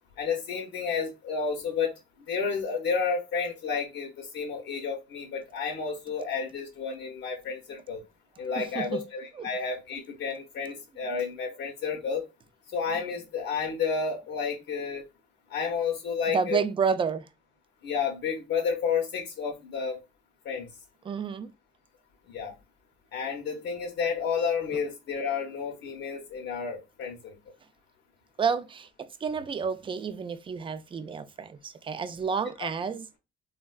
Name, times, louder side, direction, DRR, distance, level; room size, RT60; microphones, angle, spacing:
voice 1, 0.2-1.9 2.3-8.0 8.4-12.3 12.7-15.1 15.5-16.6 17.8-20.0 20.4-20.7 22.3-22.5 23.1-27.4 32.6-32.7, left 5 dB, 75° left, 0.7 m, -31 dB
voice 2, 8.6-9.0 9.3-9.5 16.3-17.3 21.0-21.5 28.4-33.1, right 6 dB, 25° right, 0.3 m, -30 dB
3.6 x 2.1 x 2.3 m
cardioid pair, 90°, 20 cm